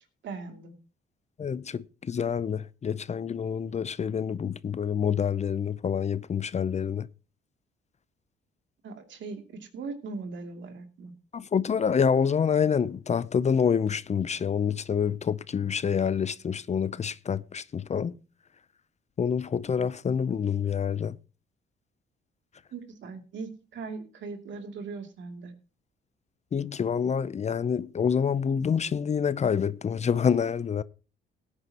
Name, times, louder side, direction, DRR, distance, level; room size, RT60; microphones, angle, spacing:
voice 1, 0.2-0.7 8.8-11.1 22.7-25.5, right 4 dB, 70° right, 2.7 m, -39 dB
voice 2, 1.4-7.1 11.3-18.2 19.2-21.2 26.5-30.8, left 7 dB, 35° left, 0.5 m, -27 dB
17.5 x 9.8 x 2.9 m
cardioid pair, 90°, 20 cm